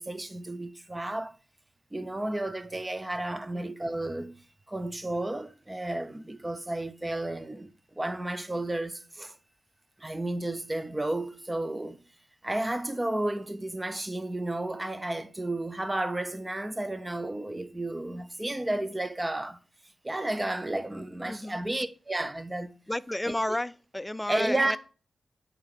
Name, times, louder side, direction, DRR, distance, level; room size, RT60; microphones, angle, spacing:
voice 1, 0.0-1.4 1.9-4.4 4.7-9.4 10.0-12.0 12.4-19.6 20.0-22.7 23.3-23.4 24.3-24.8, right 1 dB, 20° right, 0.7 m, -32 dB
voice 2, 3.3-3.7 21.3-21.6 22.9-24.8, left 1 dB, 10° left, 0.4 m, -32 dB
8.6 x 2.9 x 5.8 m
cardioid pair, 60°, 0 cm